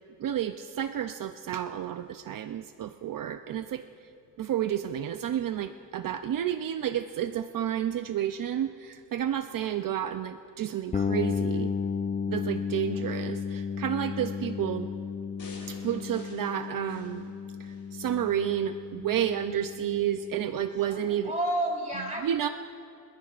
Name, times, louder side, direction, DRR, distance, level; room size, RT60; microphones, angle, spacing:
voice 1, 0.2-3.8 4.4-11.7 12.3-14.9 15.7-17.3 17.6-21.3 22.2-22.5, right 10 dB, 65° right, 9 dB, 0.5 m, -31 dB
sound 1, 10.9-20.6, left 6 dB, 20° left, 0.4 m, -33 dB
voice 2, 12.7-13.4 20.7-22.3, right 1 dB, 20° right, -1 dB, 3.0 m, -33 dB
sound 2, 15.4-17.9 18.4-18.5, left 2 dB, 75° left, 4.2 m, -49 dB
27.0 x 14.5 x 2.5 m, 2.7 s
cardioid pair, 100°, 35 cm